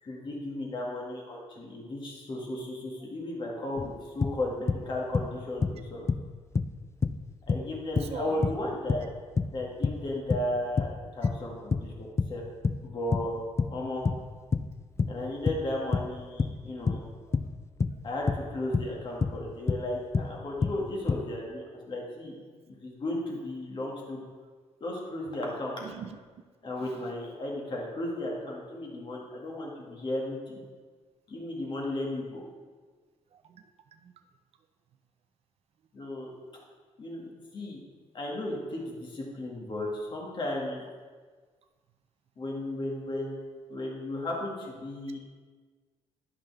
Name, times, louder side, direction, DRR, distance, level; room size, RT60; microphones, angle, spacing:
voice 1, 0.0-6.1 7.5-9.1 9.5-12.4 12.8-13.4 13.7-14.1 15.1-17.0 18.0-22.4 22.7-24.3 24.8-25.8 26.6-30.6 31.3-32.4 35.9-36.3 37.0-37.8 38.1-40.8 42.4-43.4 43.7-45.2, left 1 dB, 45° left, -2 dB, 2.0 m, -35 dB
sound 1, 3.8-4.9 5.1-6.3 6.5-12.4 12.6-19.9 20.1-21.2, left 4 dB, 25° left, 0.3 m, -28 dB
voice 2, 8.0-8.4 15.0-15.1 17.3-17.4 17.9-18.1 25.8-26.2 26.8-27.1 33.3-34.1, right 8 dB, 60° right, 7 dB, 0.6 m, -44 dB
11.0 x 5.7 x 3.5 m, 1.5 s
cardioid pair, 105°, 11 cm